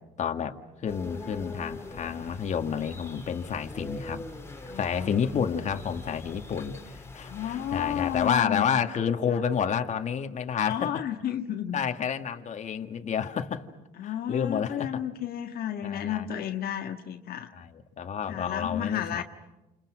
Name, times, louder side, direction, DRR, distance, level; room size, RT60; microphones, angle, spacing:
voice 1, 0.2-4.3 4.8-10.9 11.7-13.6 14.0-14.9 15.8-16.3 17.5-19.2, left 7 dB, 45° left, 6 dB, 2.0 m, -30 dB
sound 1, 0.9-8.3, left 2 dB, 15° left, 3.4 m, -43 dB
voice 2, 4.7-5.1 7.3-8.6 9.3-9.4 10.5-11.8 14.0-17.5 18.3-19.2, left 10 dB, 65° left, 4 dB, 1.7 m, -32 dB
29.0 x 29.0 x 6.2 m, 1.0 s
cardioid pair, 110°, 17 cm